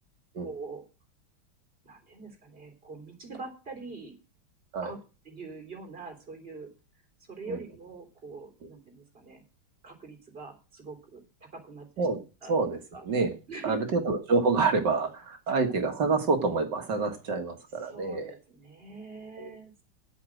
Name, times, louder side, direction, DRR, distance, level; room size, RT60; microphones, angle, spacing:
voice 1, 0.4-0.9 1.8-4.2 4.8-5.0 5.3-6.7 7.3-9.4 9.8-12.1 12.4-12.5 12.9-13.0 13.5-14.0 15.5-15.7 17.9-19.7, right 3 dB, 25° right, 2 dB, 3.5 m, -43 dB
voice 2, 12.5-13.3 13.6-18.3 19.4-19.5, right 4 dB, 55° right, 5 dB, 2.2 m, -27 dB
8.4 x 7.5 x 7.8 m, 0.32 s
omnidirectional pair, 2.3 m